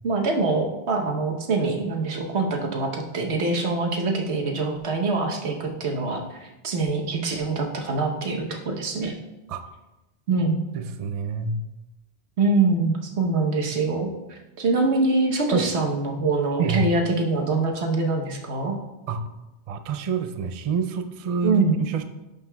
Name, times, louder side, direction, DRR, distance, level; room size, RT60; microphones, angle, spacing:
voice 1, 0.0-9.1 10.3-10.6 12.4-18.7 21.4-21.8, right 3 dB, 90° right, 2 dB, 1.2 m, -24 dB
voice 2, 10.4-11.6 15.5-15.7 16.6-16.9 19.1-19.2 19.7-22.0, right 5 dB, 50° right, 8 dB, 0.4 m, -27 dB
11.0 x 5.2 x 2.2 m, 1.0 s
omnidirectional pair, 1.1 m